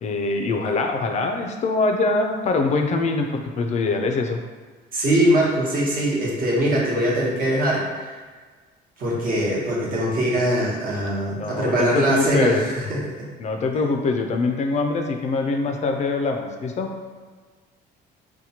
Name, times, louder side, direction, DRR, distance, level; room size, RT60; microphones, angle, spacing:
voice 1, 0.0-4.4 11.3-12.6 13.4-16.9, left 3 dB, 40° left, 4 dB, 0.4 m, -23 dB
voice 2, 4.9-8.2 9.0-13.3, right 1 dB, 50° right, -5 dB, 1.0 m, -22 dB
4.2 x 2.2 x 2.8 m, 1.5 s
cardioid pair, 125°, 19 cm